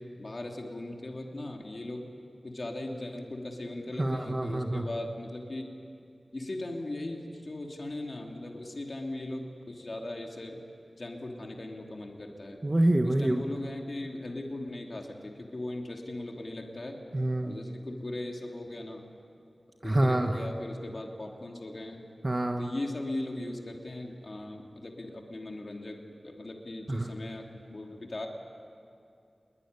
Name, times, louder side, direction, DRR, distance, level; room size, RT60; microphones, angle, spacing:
voice 1, 0.2-2.1 2.4-5.7 6.3-10.6 11.0-12.6 13.0-17.0 17.4-19.1 19.8-22.0 22.6-26.0 26.2-28.3, left 1 dB, 50° left, 1 dB, 3.0 m, -38 dB
voice 2, 4.0-4.8 12.6-13.4 17.1-17.5 19.8-20.3 22.2-22.7 26.9-27.1, right 1 dB, 30° right, 4 dB, 1.3 m, -26 dB
27.5 x 21.5 x 9.7 m, 2.5 s
wide cardioid pair, 80°, 0 cm